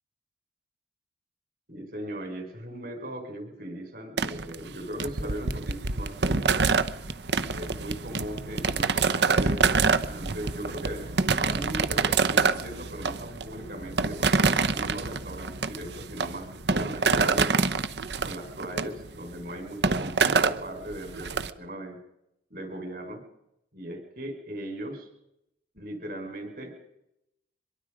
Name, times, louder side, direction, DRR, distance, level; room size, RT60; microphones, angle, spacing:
voice 1, 1.7-6.8 7.5-9.7 10.0-17.7 18.2-22.0 22.5-23.2 23.7-25.1 25.7-26.8, right 1 dB, 50° right, 5 dB, 5.0 m, -38 dB
sound 1, 4.2-21.5, right 4 dB, 70° right, 1.0 m, -26 dB
24.0 x 22.5 x 5.1 m, 0.82 s
head